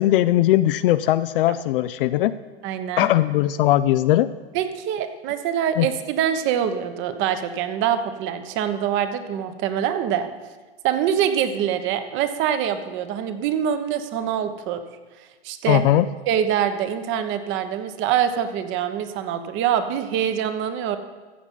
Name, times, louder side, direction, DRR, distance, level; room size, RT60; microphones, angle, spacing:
voice 1, 0.0-2.3 3.0-4.3 5.8-5.9 15.7-16.1, left 14 dB, 60° left, 13 dB, 0.5 m, -19 dB
voice 2, 2.6-3.1 4.5-10.3 10.8-14.8 15.4-15.8 16.3-21.0, right 9 dB, 40° right, 10 dB, 1.1 m, -24 dB
15.0 x 7.1 x 5.6 m, 1.3 s
hypercardioid pair, 110°, 31 cm